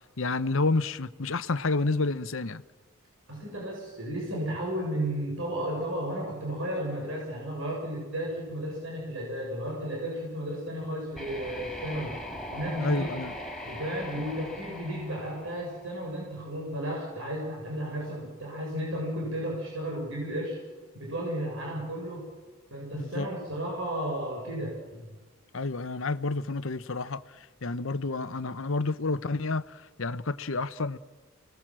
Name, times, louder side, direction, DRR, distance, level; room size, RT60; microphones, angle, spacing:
voice 1, 0.2-2.6 12.8-13.3 22.9-23.3 25.5-27.2 27.6-31.0, left 3 dB, 65° left, 0.8 m, -29 dB
voice 2, 3.3-12.2 12.5-13.1 13.6-20.6 20.9-22.3 22.7-25.2, right 1 dB, 60° right, 7.3 m, -33 dB
sound 1, 11.1-16.1, left 1 dB, ahead, 4.5 m, -40 dB
29.5 x 20.0 x 7.6 m
head